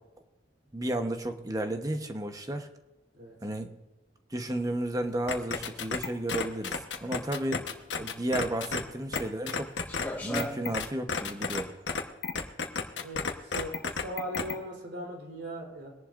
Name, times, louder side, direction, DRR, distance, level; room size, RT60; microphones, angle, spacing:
voice 1, 0.7-2.7 3.4-3.7 4.3-7.7 8.0-9.7 10.2-11.7, right 1 dB, 20° right, 6 dB, 1.0 m, -33 dB
sound 1, 4.5-10.9, equal, 10° left, 1.7 m, -42 dB
sound 2, 5.3-8.8 9.1-9.2 9.5-10.1 10.3-11.6 11.9-14.5, left 5 dB, 80° left, 1.2 m, -31 dB
voice 2, 12.9-13.7 14.0-15.9, right 1 dB, 70° right, 0 dB, 3.8 m, -39 dB
22.5 x 11.0 x 2.6 m, 1.1 s
head